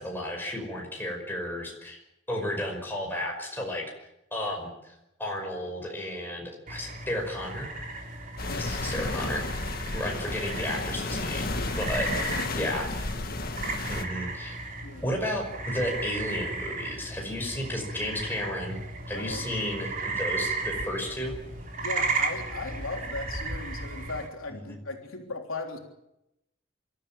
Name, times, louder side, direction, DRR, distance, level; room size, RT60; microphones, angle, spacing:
voice 1, 0.0-2.0 2.3-3.9 4.3-4.9 5.2-7.7 8.5-13.2 13.9-14.6 15.0-18.8 19.1-21.4 24.5-24.8, left 1 dB, 10° left, 0 dB, 5.4 m, -33 dB
sound 1, 6.7-24.3, right 3 dB, 40° right, 3.6 m, -35 dB
sound 2, 8.4-14.0, left 2 dB, 45° left, 1.9 m, -32 dB
voice 2, 19.1-19.5 21.8-25.8, left 3 dB, 80° left, 1 dB, 3.4 m, -37 dB
27.0 x 13.5 x 8.9 m, 0.87 s
head